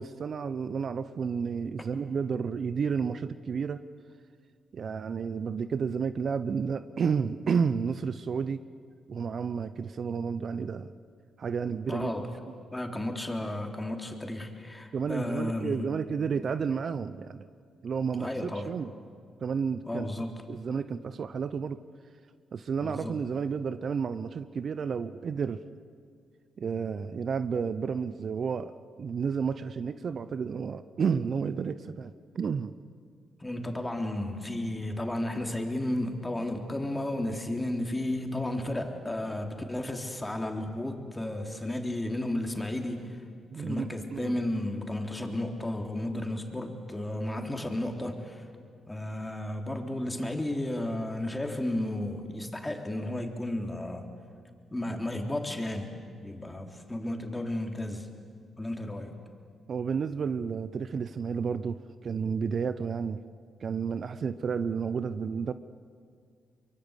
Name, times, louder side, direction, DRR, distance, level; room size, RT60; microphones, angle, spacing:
voice 1, 0.0-3.8 4.7-8.6 9.1-10.9 11.4-12.1 14.9-17.4 17.8-18.9 19.4-20.1 20.5-21.8 22.5-25.6 26.6-32.7 43.5-44.4 59.7-63.2 63.6-65.5, right 6 dB, 55° right, 14 dB, 0.7 m, -31 dB
voice 2, 11.9-12.4 12.7-15.9 18.2-18.7 19.9-20.3 22.8-23.2 33.4-43.2 43.5-48.5 48.9-54.1 54.7-55.9 56.2-58.1 58.6-59.2, left 1 dB, 15° left, 3 dB, 3.6 m, -33 dB
23.5 x 23.0 x 8.2 m, 2.1 s
hypercardioid pair, 40°, 0 cm